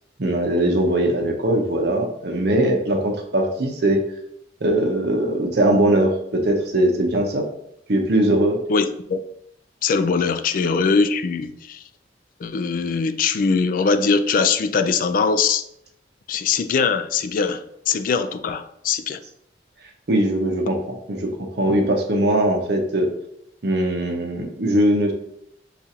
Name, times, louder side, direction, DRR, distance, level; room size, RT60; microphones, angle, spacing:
voice 1, 0.2-4.0 4.6-7.5 7.9-8.6 20.1-20.8 21.1-23.1 23.6-25.1, right 1 dB, 60° right, 3 dB, 0.7 m, -20 dB
voice 2, 8.7-9.2 9.8-11.8 12.4-15.6 16.3-19.2, left 5 dB, 50° left, 11 dB, 0.3 m, -21 dB
6.8 x 2.4 x 2.8 m, 0.75 s
head